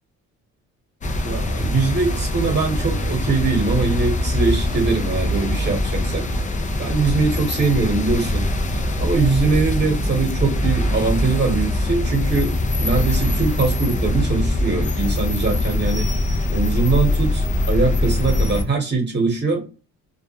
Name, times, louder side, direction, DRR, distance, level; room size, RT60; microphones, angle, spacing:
sound 1, 1.0-18.6, left 1 dB, 25° left, 0.4 m, -22 dB
voice 1, 1.2-6.3 6.8-8.5 9.0-16.1 16.5-19.6, right 4 dB, 35° right, 3 dB, 1.1 m, -22 dB
2.3 x 2.0 x 2.8 m, 0.32 s
cardioid pair, 90°, 30 cm